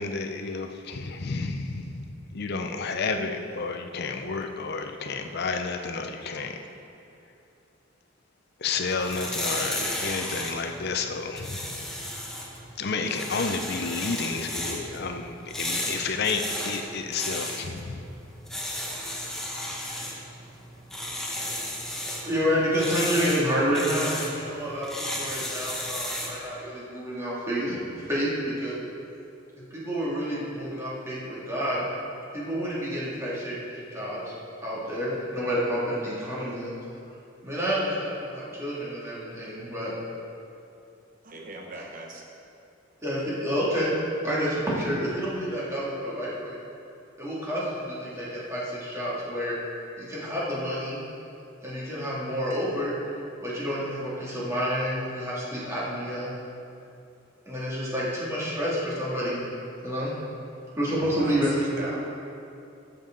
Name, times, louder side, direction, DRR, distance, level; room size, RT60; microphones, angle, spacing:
voice 1, 0.0-2.0 2.3-6.5 8.6-11.6 12.8-18.0, left 4 dB, 55° left, 5 dB, 0.6 m, -31 dB
sound 1, 8.8-26.4, left 1 dB, ahead, 1.1 m, -34 dB
voice 2, 22.1-28.8 29.7-31.9 32.3-34.3 34.6-36.7 37.4-39.9 43.0-43.9 44.2-46.6 47.2-49.6 50.0-51.0 51.6-53.0 53.4-56.3 57.5-59.4 59.8-60.1 60.8-62.0, equal, 15° right, -8 dB, 2.4 m, -29 dB
voice 3, 41.2-42.3 61.1-62.0, right 2 dB, 45° right, 0 dB, 0.8 m, -39 dB
13.0 x 7.0 x 3.8 m, 2.6 s
head